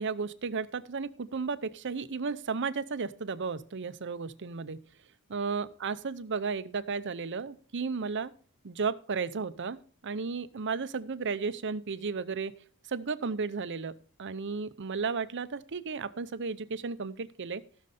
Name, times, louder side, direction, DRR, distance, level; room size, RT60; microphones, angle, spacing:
voice 1, 0.0-4.8 5.3-8.3 8.6-9.8 10.0-12.5 12.9-17.6, right 5 dB, 55° right, 14 dB, 0.7 m, -34 dB
16.5 x 6.5 x 4.2 m, 0.43 s
head